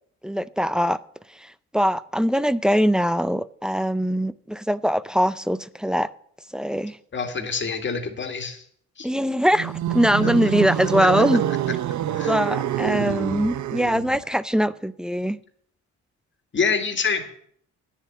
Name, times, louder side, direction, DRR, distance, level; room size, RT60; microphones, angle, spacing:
voice 1, 0.2-1.0 1.3-6.1 6.5-7.0 9.0-11.4 12.3-15.4, equal, ahead, 0.5 m, -22 dB
voice 2, 7.1-8.6 9.0-9.1 12.1-12.3 16.5-17.4, left 5 dB, 40° left, 2.1 m, -26 dB
sound 1, 9.5-14.2, right 11 dB, 70° right, 0.7 m, -26 dB
9.9 x 7.2 x 9.2 m
cardioid pair, 90°, 30 cm